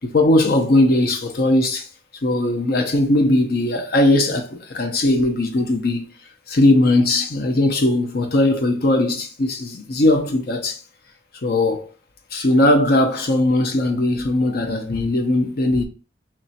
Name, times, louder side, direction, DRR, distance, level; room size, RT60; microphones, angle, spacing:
voice 1, 0.0-1.9 2.2-6.1 6.5-10.8 11.4-11.9 12.3-15.8, left 1 dB, 60° left, 0.7 m, -19 dB
3.0 x 2.6 x 4.2 m
head